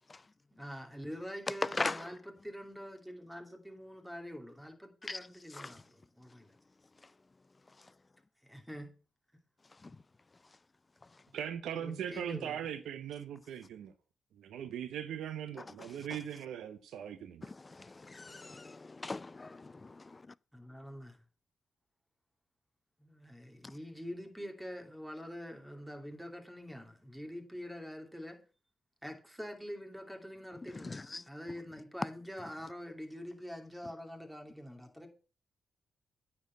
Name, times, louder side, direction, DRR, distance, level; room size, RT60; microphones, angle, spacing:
voice 1, 0.5-6.5 8.4-8.9 11.7-12.6 16.0-16.1 20.5-21.2 23.0-28.4 29.0-35.1, equal, 5° right, 2.5 m, -45 dB
voice 2, 1.7-2.1 5.1-5.2 5.5-5.7 9.8-9.9 17.4-20.2 30.8-31.2, left 3 dB, 30° left, 0.4 m, -40 dB
voice 3, 11.3-13.9 14.3-17.5, right 9 dB, 85° right, 0.7 m, -40 dB
9.4 x 4.4 x 7.3 m
cardioid pair, 60°, 0 cm